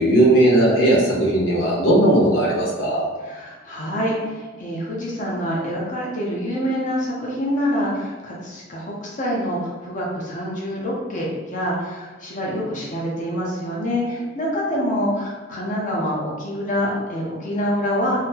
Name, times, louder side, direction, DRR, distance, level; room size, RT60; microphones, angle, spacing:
voice 1, 0.0-3.1, right 1 dB, 85° left, -5 dB, 1.0 m, -17 dB
voice 2, 3.2-18.3, equal, 40° left, -4 dB, 0.7 m, -26 dB
4.0 x 2.0 x 2.8 m, 1.3 s
head